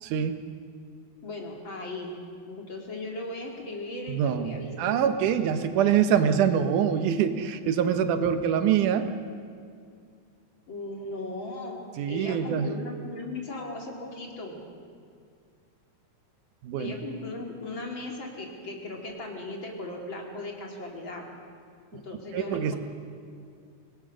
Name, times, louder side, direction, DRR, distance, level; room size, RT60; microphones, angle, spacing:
voice 1, 0.0-0.4 4.1-9.1 12.0-12.7 16.6-16.9 22.3-22.8, right 8 dB, 90° right, 9 dB, 2.6 m, -24 dB
voice 2, 1.2-2.1 2.5-5.0 6.1-6.4 10.7-11.8 12.1-14.6 16.8-21.2 22.0-22.8, left 2 dB, 40° left, 1 dB, 3.0 m, -37 dB
25.0 x 19.0 x 6.3 m, 2.3 s
omnidirectional pair, 3.5 m